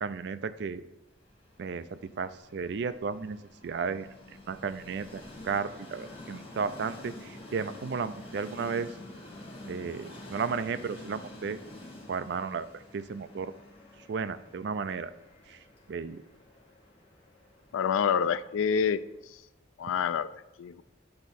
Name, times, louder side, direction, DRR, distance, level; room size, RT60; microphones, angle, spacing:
voice 1, 0.0-0.8 1.6-4.1 4.5-8.9 9.7-11.6 12.1-13.5 14.1-15.1 15.5-15.6 15.9-16.2, right 5 dB, 55° right, 13 dB, 0.4 m, -34 dB
Train, 1.2-19.2, left 1 dB, 30° left, 1.6 m, -48 dB
voice 2, 17.7-19.0 19.8-20.8, left 7 dB, 80° left, 15 dB, 0.3 m, -27 dB
8.8 x 4.6 x 4.1 m, 0.92 s
head